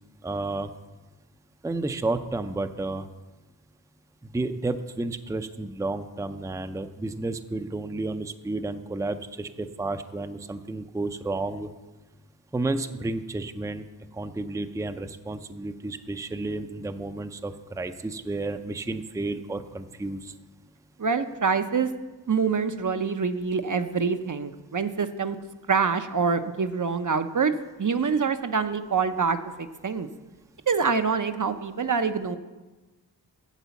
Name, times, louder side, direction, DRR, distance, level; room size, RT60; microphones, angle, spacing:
voice 1, 0.2-0.7 1.6-3.1 4.3-11.7 12.5-13.9 14.1-20.3, right 2 dB, 10° right, 9 dB, 0.5 m, -31 dB
voice 2, 21.0-21.9 22.3-25.4 25.7-27.5 27.8-30.1 30.7-32.4, right 5 dB, 50° right, 9 dB, 0.6 m, -25 dB
8.2 x 7.4 x 7.0 m, 1.2 s
wide cardioid pair, 60°, 40 cm